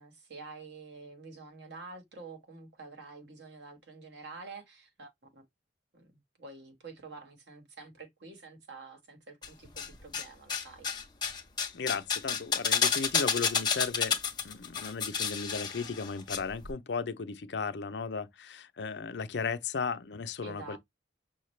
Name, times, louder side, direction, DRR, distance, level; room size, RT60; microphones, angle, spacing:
voice 1, 0.0-5.4 5.9-6.1 6.4-10.9 20.4-20.8, right 3 dB, 70° right, 1.3 m, -48 dB
sound 1, 9.4-10.2 10.5-16.4 16.6-16.7, left 6 dB, 25° left, 0.8 m, -30 dB
voice 2, 11.7-14.2 14.4-20.8, left 5 dB, 70° left, 0.5 m, -35 dB
5.7 x 2.4 x 3.1 m
head